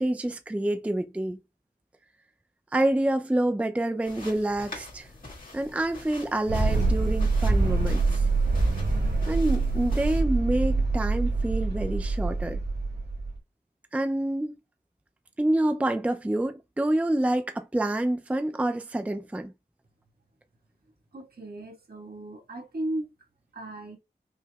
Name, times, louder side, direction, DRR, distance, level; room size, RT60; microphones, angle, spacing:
voice 1, 0.0-1.4 2.7-5.1 5.5-8.2 9.3-12.6 13.9-14.5 15.4-19.5, right 1 dB, 10° right, 0.4 m, -27 dB
sound 1, 4.0-10.2, left 2 dB, 55° left, 2.0 m, -45 dB
sound 2, 6.5-13.4, right 3 dB, 90° right, 1.4 m, -25 dB
voice 2, 21.1-23.1 23.5-24.0, right 1 dB, 60° right, 1.5 m, -36 dB
5.5 x 2.9 x 2.3 m
wide cardioid pair, 90°, 17 cm